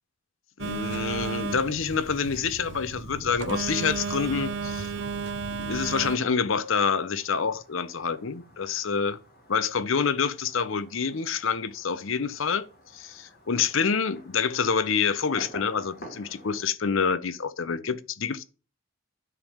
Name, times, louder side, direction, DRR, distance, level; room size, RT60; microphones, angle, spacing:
voice 1, 0.6-4.9 5.6-9.2 9.5-12.7 12.9-18.4, left 6 dB, 70° left, 0.7 m, -27 dB
Telephone, 0.6-6.2, right 4 dB, 55° right, 0.7 m, -33 dB
Fireworks, 5.7-16.6, equal, 45° left, 2.6 m, -50 dB
10.0 x 3.6 x 7.0 m
head